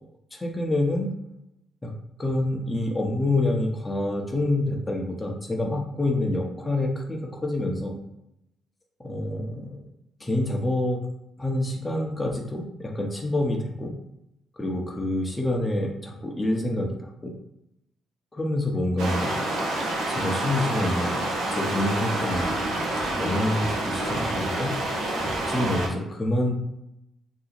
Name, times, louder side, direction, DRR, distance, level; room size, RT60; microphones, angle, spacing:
voice 1, 0.3-1.1 1.8-1.9 2.2-8.0 9.0-9.8 10.2-11.0 11.4-13.9 14.6-17.3 18.3-19.4 20.1-21.2 21.5-22.5 23.2-24.8 25.5-26.5, left 1 dB, 15° left, -1 dB, 0.7 m, -27 dB
sound 1, 19.0-25.9, right 1 dB, 75° right, 0.7 m, -28 dB
2.8 x 2.1 x 4.0 m, 0.84 s
cardioid pair, 90°, 0 cm